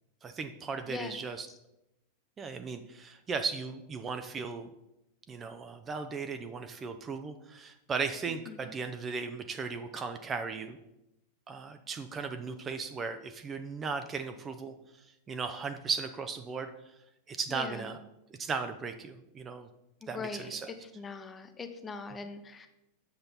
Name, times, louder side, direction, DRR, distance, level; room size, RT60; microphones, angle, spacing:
voice 1, 0.2-1.5 2.4-4.7 5.3-10.8 11.5-16.7 17.3-18.0 18.4-19.7 20.1-20.7, right 5 dB, 20° right, 8 dB, 0.5 m, -37 dB
voice 2, 0.9-1.2 8.5-8.7 17.5-18.0 20.0-22.7, left 4 dB, 20° left, 8 dB, 0.8 m, -41 dB
7.9 x 6.4 x 4.1 m, 0.88 s
figure-of-eight pair, 90°, 0 cm